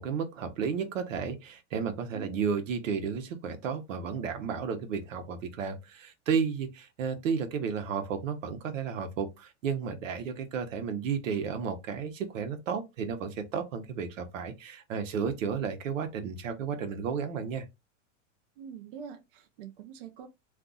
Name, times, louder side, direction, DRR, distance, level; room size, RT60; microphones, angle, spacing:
voice 1, 0.0-17.6, right 6 dB, 85° right, 1.0 m, -33 dB
voice 2, 18.6-20.3, right 7 dB, 50° right, 0.5 m, -44 dB
2.6 x 2.4 x 3.8 m
supercardioid pair, 165°, 38 cm